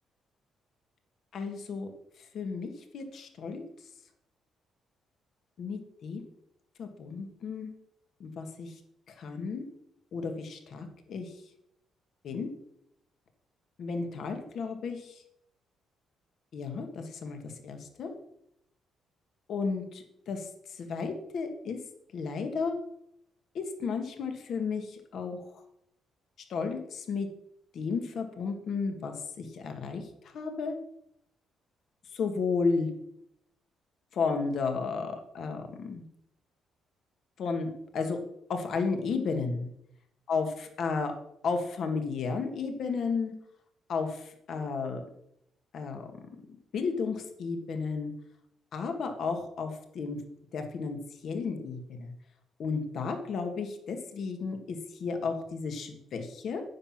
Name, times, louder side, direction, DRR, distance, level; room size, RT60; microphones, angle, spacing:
voice 1, 1.3-1.9 2.3-3.7 5.6-6.2 6.8-7.7 8.2-8.7 9.1-9.6 10.1-11.3 12.2-12.5 13.8-15.2 16.5-18.1 19.5-21.8 22.1-22.8 23.5-25.6 26.5-27.3 27.7-30.1 30.3-30.7 32.1-32.9 34.1-36.0 37.4-38.2 38.5-39.7 40.3-41.1 41.4-43.3 43.9-45.0 45.7-46.3 46.7-48.1 48.7-50.2 50.5-51.0 51.2-52.1 52.6-56.6, left 4 dB, 65° left, 5 dB, 1.9 m, -33 dB
9.7 x 6.0 x 7.5 m, 0.75 s
cardioid pair, 90°, 0 cm